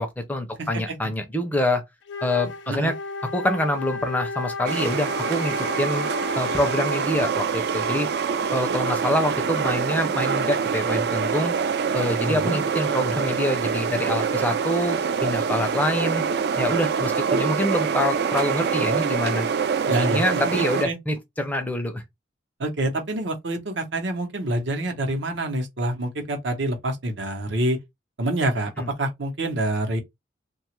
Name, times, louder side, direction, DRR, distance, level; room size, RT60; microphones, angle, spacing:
voice 1, 0.0-1.8 2.2-3.0 3.3-6.1 6.4-8.1 8.5-11.5 11.9-16.2 16.6-19.5 19.8-22.0 28.8-28.9, left 1 dB, 10° left, 0.4 m, -26 dB
voice 2, 0.6-0.9 2.7-2.9 12.2-12.6 19.9-21.0 22.6-27.8 28.2-30.0, right 1 dB, 70° right, 0.8 m, -27 dB
Wind instrument woodwind instrument, 2.0-7.3, left 3 dB, 70° left, 0.5 m, -33 dB
sound 1, 4.7-20.9, right 6 dB, 55° right, 0.3 m, -25 dB
2.8 x 2.3 x 2.9 m
head